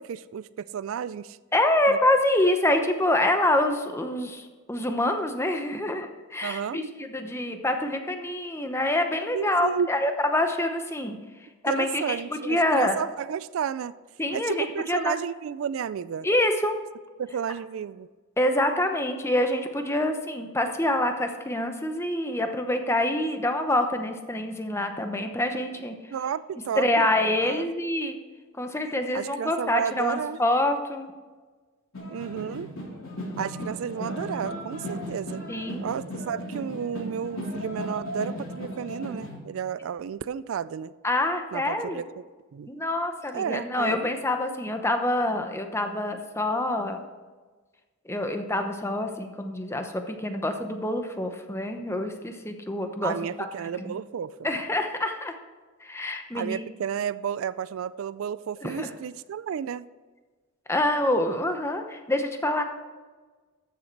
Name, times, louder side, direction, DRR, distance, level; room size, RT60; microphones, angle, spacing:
voice 1, 0.0-1.4 1.9-2.0 6.4-6.8 9.3-9.9 11.7-14.0 14.3-16.3 17.2-18.1 26.1-27.1 27.4-27.7 29.1-30.4 32.1-32.7 33.4-35.4 35.8-40.9 41.5-42.2 42.5-42.7 43.3-44.1 53.0-54.5 56.3-59.9, right 8 dB, 75° right, 17 dB, 0.3 m, -32 dB
voice 2, 1.5-11.2 11.6-13.0 14.2-15.2 16.2-16.7 18.4-25.9 26.8-28.1 28.6-31.1 35.5-35.8 41.0-42.0 42.7-47.0 48.1-53.5 53.8-53.9 54.4-55.3 55.8-56.6 58.6-58.9 60.7-62.6, left 1 dB, 15° left, 6 dB, 0.9 m, -26 dB
sound 1, 31.9-39.3, equal, 75° left, 3.2 m, -36 dB
14.0 x 6.7 x 4.5 m, 1.4 s
head